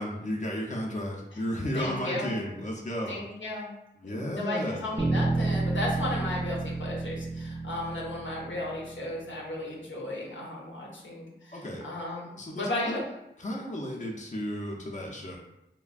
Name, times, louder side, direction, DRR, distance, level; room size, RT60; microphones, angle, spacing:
voice 1, 0.0-3.2 4.0-5.0 11.5-11.9 12.4-13.0 13.4-15.4, equal, 40° left, -1 dB, 0.5 m, -33 dB
voice 2, 1.7-2.3 3.1-3.7 4.0-13.0, left 1 dB, 90° left, -3 dB, 0.7 m, -35 dB
sound 1, 5.0-9.3, right 2 dB, 25° right, 0.5 m, -31 dB
3.2 x 2.1 x 2.4 m, 0.89 s
wide cardioid pair, 50°, 19 cm